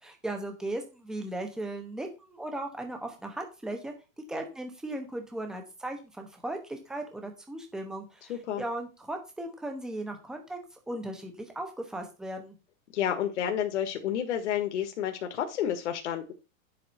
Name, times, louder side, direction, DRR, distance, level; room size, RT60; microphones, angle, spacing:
voice 1, 0.0-3.9 4.3-12.6, right 1 dB, ahead, 4 dB, 0.9 m, -37 dB
voice 2, 8.3-8.6 12.9-16.3, left 10 dB, 55° left, 5 dB, 1.7 m, -30 dB
10.5 x 7.7 x 4.3 m, 0.30 s
supercardioid pair, 175°, 41 cm